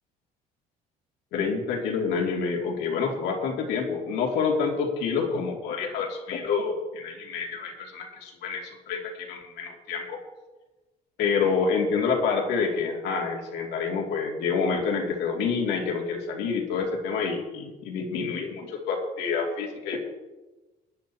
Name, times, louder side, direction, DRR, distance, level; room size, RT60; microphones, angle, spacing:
voice 1, 1.3-10.2 11.2-20.0, left 5 dB, 90° left, -1 dB, 2.7 m, -28 dB
23.5 x 10.5 x 3.0 m, 1.2 s
cardioid pair, 110°, 17 cm